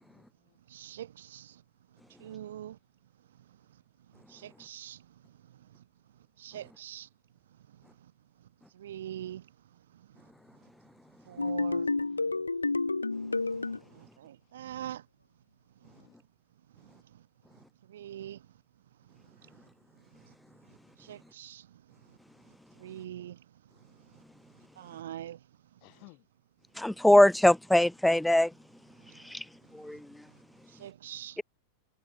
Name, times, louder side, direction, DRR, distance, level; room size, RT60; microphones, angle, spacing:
voice 1, 0.0-0.6 11.9-12.6 15.8-16.2 25.8-26.3, left 37 dB, 45° left, 2.7 m, -59 dB
voice 2, 0.7-1.6 2.2-2.8 4.3-5.0 6.4-7.1 8.7-9.4 11.3-11.9 13.9-15.0 17.9-18.4 21.0-21.7 22.8-23.4 24.8-25.4 30.7-31.4, right 11 dB, 60° right, 1.1 m, -43 dB
sound 1, 11.4-13.8, left 3 dB, 80° left, 0.5 m, -30 dB
voice 3, 26.8-28.5 29.3-29.4 29.8-30.0, left 1 dB, 5° left, 0.3 m, -21 dB
figure-of-eight pair, 90°, 0 cm